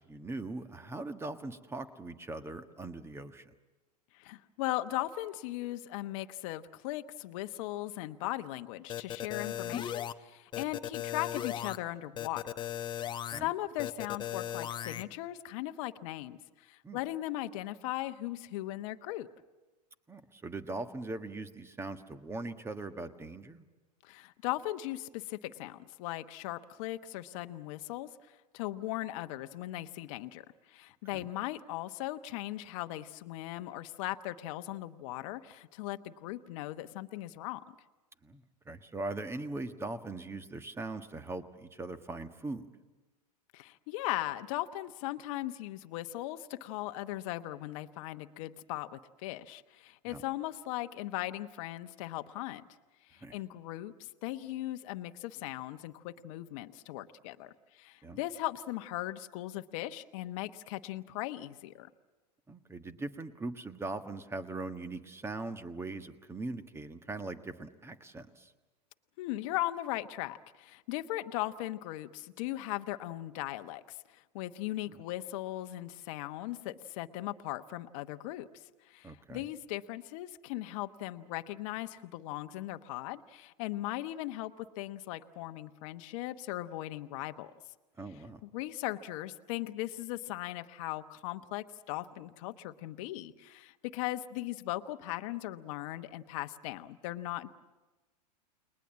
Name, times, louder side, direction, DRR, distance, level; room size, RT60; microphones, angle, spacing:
voice 1, 0.1-3.5 13.3-13.5 16.8-17.0 20.1-23.7 31.1-31.3 38.2-42.7 50.1-50.2 53.2-53.4 58.0-58.2 62.5-68.5 79.0-79.5 88.0-88.4, right 2 dB, 10° right, 10 dB, 1.4 m, -40 dB
voice 2, 4.1-12.5 13.0-19.3 24.0-28.1 28.5-37.6 43.5-52.6 53.1-61.9 69.2-78.5 78.9-87.5 88.4-97.5, left 16 dB, 50° left, 9 dB, 1.1 m, -38 dB
sound 1, 8.9-10.1 10.5-11.8 12.2-13.4 13.8-15.0, left 10 dB, 20° left, 0.9 m, -37 dB
30.0 x 21.0 x 7.5 m, 1.2 s
figure-of-eight pair, 95°, 21 cm